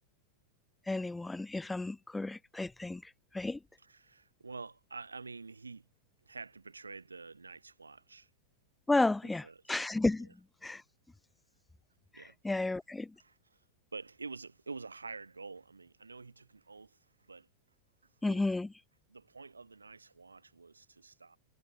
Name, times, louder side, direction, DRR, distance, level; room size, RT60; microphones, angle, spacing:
voice 1, 0.9-3.0 3.3-3.6 8.9-10.3 10.6-10.8 12.4-13.1 18.2-18.7, left 2 dB, 5° left, 0.4 m, -32 dB
voice 2, 3.8-5.9 6.2-8.3 9.2-9.8 10.2-10.3 12.1-12.7 13.2-13.6 13.9-17.5 18.2-18.5 19.1-21.4, right 4 dB, 80° right, 3.7 m, -48 dB
figure-of-eight pair, 90°, 0 cm